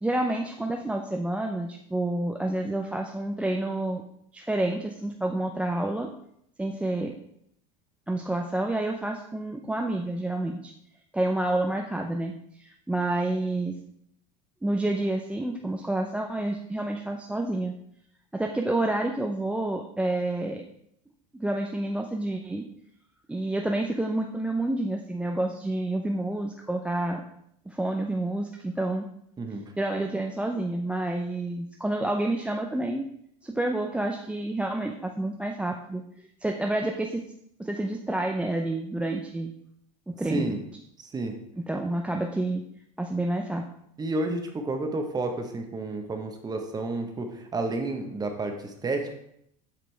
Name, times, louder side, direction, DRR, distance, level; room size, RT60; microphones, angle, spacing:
voice 1, 0.0-4.0 4.3-6.1 6.6-7.1 8.1-10.7 11.1-13.7 14.6-17.7 18.3-20.6 21.3-22.6 23.3-27.2 27.7-29.1 29.8-33.0 33.4-37.2 37.6-39.5 40.1-40.5 41.7-42.6 43.0-43.6, right 1 dB, 5° right, 1 dB, 0.5 m, -29 dB
voice 2, 29.4-29.7 40.3-40.6 41.0-41.4 44.0-49.1, right 2 dB, 20° right, 4 dB, 1.1 m, -31 dB
7.6 x 5.0 x 3.4 m, 0.73 s
supercardioid pair, 100°, 18 cm